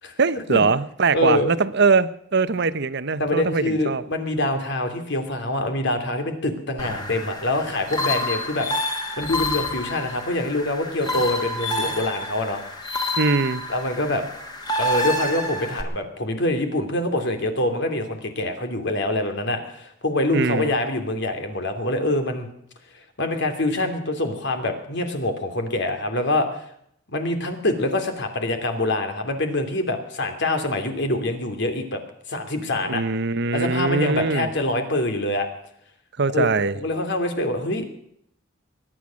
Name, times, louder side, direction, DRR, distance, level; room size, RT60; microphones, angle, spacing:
voice 1, 0.2-4.0 13.2-13.6 20.3-20.7 32.8-34.5 36.2-36.8, right 4 dB, 60° right, 0.9 m, -22 dB
voice 2, 1.1-1.5 3.2-12.6 13.7-14.2 14.8-22.5 22.9-26.6 27.1-32.0 32.3-33.0 33.5-35.5 36.3-38.1, left 1 dB, 60° left, 2.9 m, -25 dB
sound 1, 6.8-15.8, left 1 dB, 20° left, 2.4 m, -28 dB
22.5 x 10.0 x 6.3 m
head